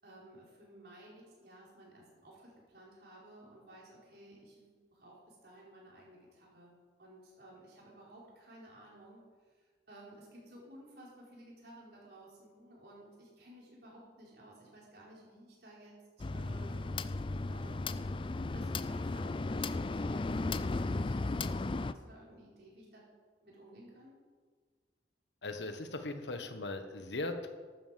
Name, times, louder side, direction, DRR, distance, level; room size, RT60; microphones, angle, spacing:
voice 1, 0.0-6.7 7.0-9.2 9.9-15.9 16.3-17.0 17.5-18.0 18.5-23.0 23.4-24.1, right 1 dB, 60° right, -4 dB, 5.0 m, -55 dB
sound 1, 16.2-21.9, left 3 dB, 30° left, 0.4 m, -35 dB
voice 2, 25.4-27.5, left 2 dB, 90° left, 7 dB, 1.4 m, -39 dB
12.0 x 9.2 x 7.6 m, 1.5 s
head